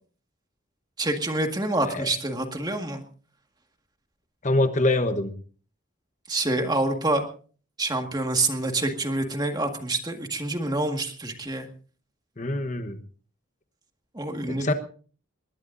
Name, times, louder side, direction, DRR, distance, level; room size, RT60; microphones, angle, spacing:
voice 1, 1.0-3.0 6.3-7.2 7.8-11.7 14.1-14.7, right 2 dB, 20° right, 5 dB, 1.8 m, -27 dB
voice 2, 4.4-5.3 12.4-13.0 14.5-14.7, left 2 dB, 35° left, 8 dB, 1.0 m, -24 dB
20.5 x 20.0 x 2.7 m, 0.41 s
head